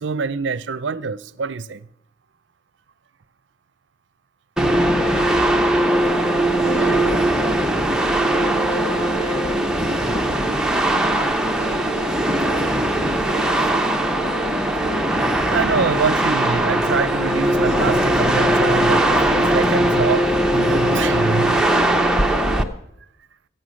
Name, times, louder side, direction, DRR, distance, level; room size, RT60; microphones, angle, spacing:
voice 1, 0.0-1.8 15.5-20.3 20.5-21.6, right 5 dB, 65° right, 0.5 m, -24 dB
sound 1, 4.6-22.6, right 1 dB, 5° right, 0.7 m, -19 dB
voice 2, 5.0-15.4, left 2 dB, 65° left, 3.6 m, -40 dB
14.5 x 8.9 x 6.3 m
head